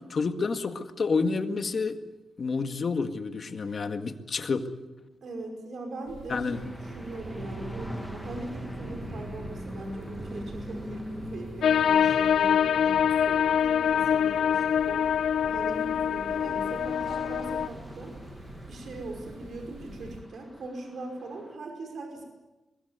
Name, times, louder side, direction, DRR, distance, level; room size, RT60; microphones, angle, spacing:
voice 1, 0.1-2.0 2.4-4.6 6.3-6.6, left 4 dB, 45° left, 7 dB, 1.9 m, -29 dB
voice 2, 5.2-15.1 15.4-18.1 18.7-22.3, right 2 dB, 60° right, 3 dB, 5.3 m, -40 dB
sound 1, 6.1-20.2, right 2 dB, 85° right, 6.3 m, -43 dB
sound 2, 6.5-21.6, equal, ahead, 1.6 m, -45 dB
sound 3, 11.6-17.7, left 8 dB, 80° left, 0.8 m, -24 dB
22.5 x 21.5 x 9.5 m, 1.1 s
wide cardioid pair, 150°, 0 cm